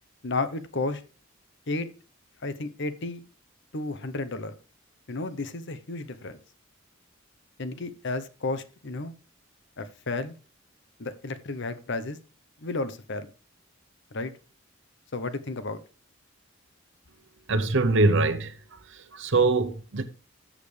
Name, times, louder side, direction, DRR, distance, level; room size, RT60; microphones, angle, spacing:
voice 1, 0.2-1.0 1.7-1.9 2.4-3.2 3.7-4.5 5.1-6.4 7.6-9.1 9.8-10.4 11.0-12.2 12.6-13.3 14.1-14.3 15.1-15.8, left 3 dB, 60° left, 1.0 m, -32 dB
voice 2, 17.5-18.6 18.9-20.0, right 3 dB, 60° right, 0.9 m, -23 dB
13.5 x 7.6 x 3.4 m
head